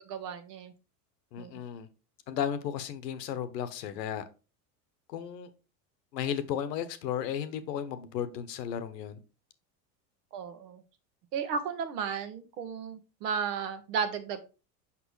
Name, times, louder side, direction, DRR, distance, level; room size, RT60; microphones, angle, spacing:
voice 1, 0.1-0.7 1.4-1.5 10.3-10.8 11.3-14.5, right 6 dB, 70° right, 10 dB, 1.2 m, -34 dB
voice 2, 1.3-1.9 2.3-4.2 5.1-5.5 6.1-9.2, left 9 dB, 80° left, 12 dB, 1.0 m, -34 dB
5.9 x 5.5 x 3.1 m, 0.31 s
hypercardioid pair, 90°, 49 cm